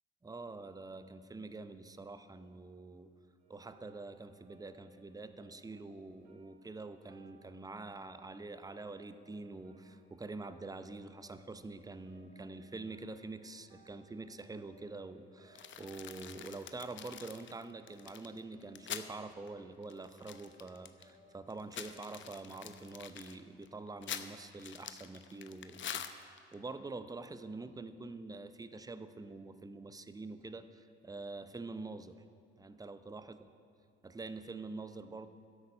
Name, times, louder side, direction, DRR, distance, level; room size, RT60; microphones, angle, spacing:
voice 1, 0.2-3.1 3.5-32.2 32.6-33.4 34.0-35.3, right 3 dB, 10° right, 11 dB, 0.6 m, -46 dB
sound 1, 3.4-22.7, right 1 dB, 75° right, 2.0 m, -65 dB
sound 2, 15.6-19.1 19.5-19.6 19.8-21.1 21.5-26.5, left 9 dB, 40° left, 0.7 m, -45 dB
12.5 x 8.0 x 5.4 m, 2.4 s
hypercardioid pair, 55°, 30 cm